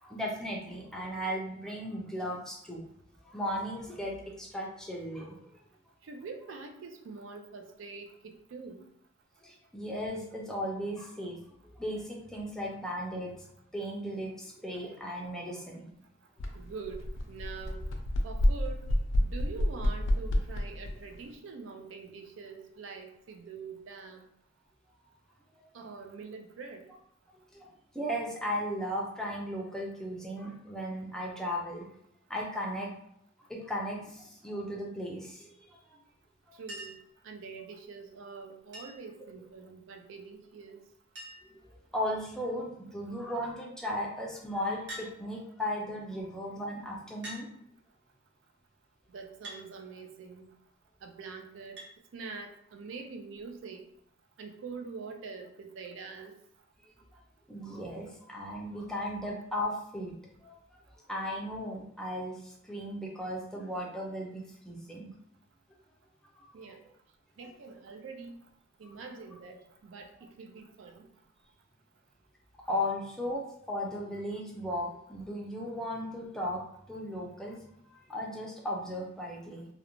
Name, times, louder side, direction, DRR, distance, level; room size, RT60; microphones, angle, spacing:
voice 1, 0.0-2.8 3.2-5.5 9.4-13.4 13.7-15.9 25.5-25.6 27.5-31.9 32.3-32.9 33.5-36.0 36.5-36.6 41.4-47.5 56.8-56.9 57.5-60.1 60.4-60.8 61.1-65.1 65.7-65.8 66.3-66.8 67.4-67.5 72.7-76.6 76.9-77.6 77.9-79.7, equal, 5° left, -3 dB, 0.4 m, -36 dB
voice 2, 6.0-8.8 16.5-17.8 18.2-18.9 19.2-24.3 25.7-26.9 36.6-37.0 37.2-40.8 49.1-50.5 51.0-51.8 52.1-53.8 54.4-56.3 66.5-66.8 67.4-68.4 68.8-71.0, right 4 dB, 80° right, 5 dB, 0.4 m, -44 dB
sound 1, 16.4-16.5 16.8-21.0, left 1 dB, 75° left, 0.4 m, -29 dB
Chink clink, 36.7-37.1 38.7-39.1 40.5-40.6 40.8-40.9 41.2-41.6 42.4-42.7 44.9-45.1 46.2-46.3 47.2-47.5 49.4-49.6 51.8-51.9 53.4-53.5, right 1 dB, 60° right, 0.9 m, -44 dB
2.5 x 2.0 x 2.9 m, 0.74 s
head